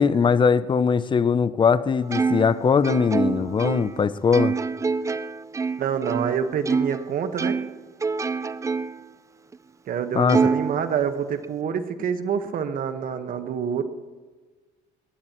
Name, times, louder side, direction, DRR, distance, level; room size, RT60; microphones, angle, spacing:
voice 1, 0.0-4.5 10.1-10.4, left 6 dB, 30° left, 15 dB, 0.6 m, -20 dB
Plucked string instrument, 2.1-7.1 7.4-9.1 9.5-9.6 10.3-11.5, right 4 dB, 20° right, 0.4 m, -26 dB
voice 2, 5.8-7.6 9.9-13.8, right 7 dB, 55° right, 8 dB, 1.4 m, -27 dB
20.0 x 18.5 x 3.1 m, 1.3 s
cardioid pair, 110°, 17 cm